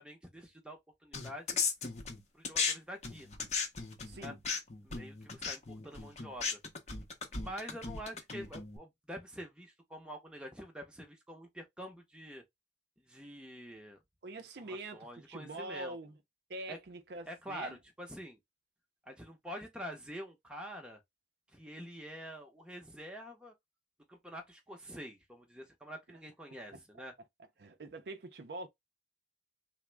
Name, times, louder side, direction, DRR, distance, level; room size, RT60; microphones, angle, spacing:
voice 1, 0.0-1.6 2.3-3.3 4.2-4.3 4.8-6.6 7.3-12.4 13.0-14.0 14.6-16.0 16.7-16.8 17.3-18.4 19.1-21.0 21.5-23.5 24.1-27.1, equal, 5° right, 0.7 m, -46 dB
sound 1, 1.1-2.7 3.0-8.8, left 5 dB, 35° left, 0.6 m, -36 dB
voice 2, 4.0-4.4 14.2-16.2 16.5-17.8 26.1-26.2 26.7-26.8 27.6-28.7, right 2 dB, 55° right, 0.5 m, -44 dB
3.4 x 2.0 x 3.3 m
head